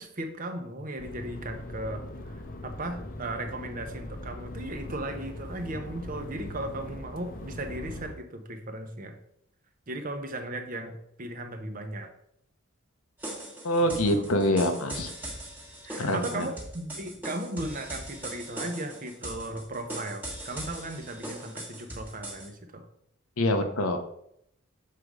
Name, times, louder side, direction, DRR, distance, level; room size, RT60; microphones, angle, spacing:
voice 1, 0.0-9.2 9.9-12.1 13.8-14.2 15.8-22.9, right 1 dB, 40° right, 6 dB, 0.8 m, -37 dB
sound 1, 1.0-8.1, left 1 dB, 40° left, 0.7 m, -40 dB
sound 2, 13.2-22.5, right 1 dB, 10° right, 1.2 m, -40 dB
voice 2, 13.6-15.1 16.0-16.5 23.4-24.0, left 1 dB, 85° left, 5 dB, 0.9 m, -25 dB
6.7 x 3.7 x 4.8 m, 0.73 s
head